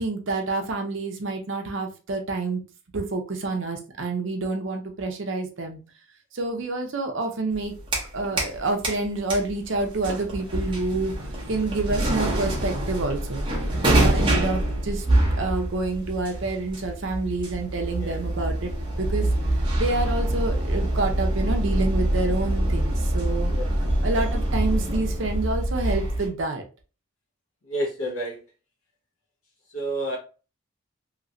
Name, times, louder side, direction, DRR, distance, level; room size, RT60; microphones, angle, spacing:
voice 1, 0.0-2.6 2.9-5.8 6.3-7.7 8.1-11.1 11.5-13.5 13.9-15.1 15.4-23.5 24.0-26.6, right 3 dB, 60° right, 4 dB, 0.6 m, -28 dB
sound 1, 7.5-8.6 8.8-26.3, right 1 dB, 25° right, 0.9 m, -25 dB
voice 2, 27.7-28.4 29.7-30.2, right 1 dB, 85° left, -1 dB, 1.2 m, -30 dB
3.0 x 2.8 x 2.6 m, 0.35 s
head